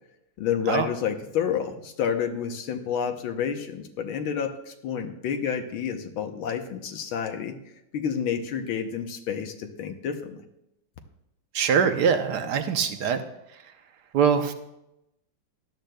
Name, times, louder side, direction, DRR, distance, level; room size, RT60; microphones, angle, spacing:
voice 1, 0.4-7.6 7.9-10.4, left 7 dB, 75° left, 6 dB, 1.7 m, -29 dB
voice 2, 11.5-13.2 14.1-14.5, right 7 dB, 65° right, 8 dB, 1.2 m, -23 dB
17.0 x 11.5 x 2.3 m, 0.85 s
omnidirectional pair, 2.3 m